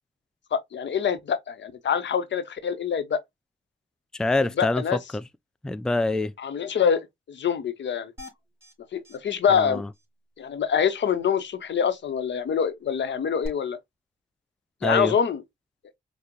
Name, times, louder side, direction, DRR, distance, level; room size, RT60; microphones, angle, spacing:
voice 1, 0.5-3.2 4.6-5.0 6.4-8.1 8.9-9.8 10.4-13.8 14.8-15.4, left 7 dB, 70° left, 0.7 m, -25 dB
voice 2, 4.1-5.2 5.6-6.3 9.5-9.9 14.8-15.1, left 2 dB, 5° left, 0.3 m, -25 dB
sound 1, 8.2-8.7 9.0-9.2 9.5-9.6 9.9-10.0 13.4-13.5, left 1 dB, 15° right, 2.7 m, -41 dB
5.0 x 2.0 x 2.8 m
supercardioid pair, 45°, 19 cm